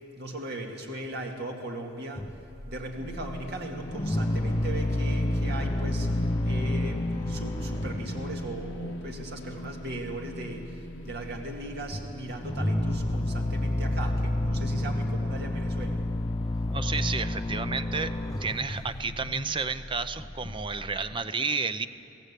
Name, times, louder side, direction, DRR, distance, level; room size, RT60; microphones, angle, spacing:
voice 1, 0.2-2.3 2.7-16.0, right 1 dB, 55° right, 1 dB, 2.1 m, -38 dB
sound 1, 2.2-3.5 3.8-8.8 9.0-9.5 9.8-10.3 10.6-11.3 11.6-21.2, left 1 dB, 20° left, 0.6 m, -30 dB
sound 2, 2.9-19.6, left 1 dB, 85° left, 0.8 m, -42 dB
voice 2, 16.7-18.1 18.4-21.9, right 4 dB, 25° right, 11 dB, 0.6 m, -31 dB
23.0 x 16.0 x 8.2 m, 2.7 s
head